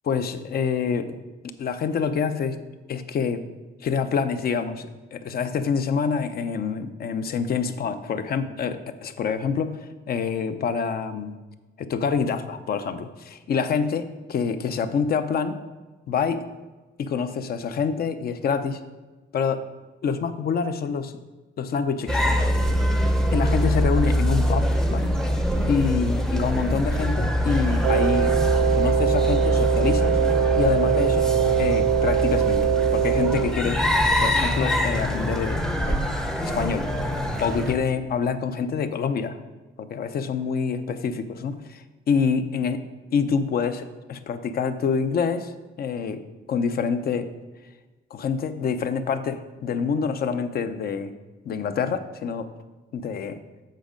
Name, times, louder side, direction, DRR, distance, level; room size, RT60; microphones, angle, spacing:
voice 1, 0.1-1.2 1.4-2.6 2.9-3.4 3.8-11.3 11.8-15.6 16.1-16.5 17.0-18.8 19.3-19.6 20.0-21.1 21.6-22.5 23.3-25.2 25.7-28.3 28.7-30.2 30.6-31.3 31.6-33.8 34.1-35.6 35.9-36.0 36.4-36.9 37.4-39.4 39.8-42.8 43.1-45.5 45.8-46.2 46.5-47.3 48.1-51.1 51.5-52.5 52.9-53.4, left 6 dB, 50° left, 10 dB, 0.6 m, -26 dB
sound 1, 22.1-37.7, equal, 5° left, 0.6 m, -24 dB
Wind instrument woodwind instrument, 27.8-33.6, right 10 dB, 70° right, 0.7 m, -22 dB
7.6 x 6.2 x 5.0 m, 1.2 s
cardioid pair, 160°, 20 cm